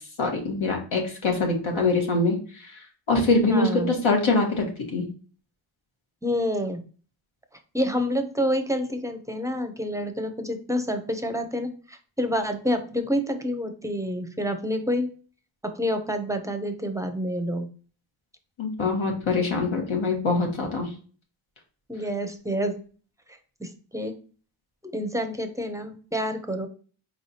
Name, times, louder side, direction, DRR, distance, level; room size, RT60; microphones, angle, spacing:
voice 1, 0.0-2.7 3.1-4.6 4.9-5.1 18.6-20.9, left 3 dB, 80° left, 1 dB, 1.3 m, -24 dB
voice 2, 3.5-3.9 6.2-6.8 7.7-15.1 15.6-17.7 21.9-22.8 23.6-24.1 24.9-26.7, equal, 5° right, 7 dB, 0.5 m, -28 dB
4.6 x 3.2 x 2.7 m, 0.39 s
wide cardioid pair, 110°, 47 cm